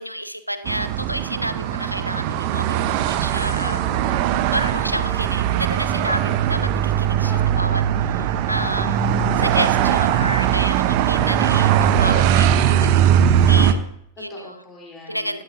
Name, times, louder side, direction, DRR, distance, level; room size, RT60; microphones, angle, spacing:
voice 1, 0.0-3.8 4.5-13.1 13.5-14.6 15.1-15.4, equal, 90° right, 12 dB, 0.7 m, -30 dB
sound 1, 0.7-13.7, right 10 dB, 45° right, 0.8 m, -20 dB
voice 2, 3.6-4.4 7.2-7.8 14.3-15.4, left 2 dB, 25° left, 0 dB, 3.5 m, -39 dB
16.5 x 12.0 x 2.7 m, 0.70 s
figure-of-eight pair, 90°, 0 cm